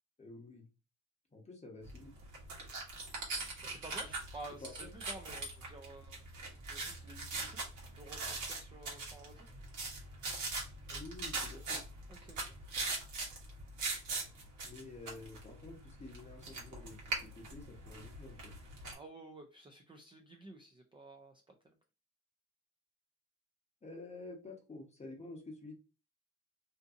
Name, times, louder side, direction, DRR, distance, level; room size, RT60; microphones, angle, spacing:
voice 1, 0.2-0.7 1.3-2.1 4.6-4.9 10.9-11.8 14.6-18.5 23.8-25.7, left 2 dB, 20° left, 1 dB, 0.8 m, -50 dB
sound 1, 1.9-18.9, right 3 dB, 65° right, 1.1 m, -42 dB
voice 2, 3.6-6.2 6.7-7.6 7.9-9.5 12.1-12.5 18.9-21.7, right 2 dB, 15° right, 3 dB, 0.3 m, -52 dB
2.6 x 2.5 x 2.4 m, 0.31 s
cardioid pair, 115°, 32 cm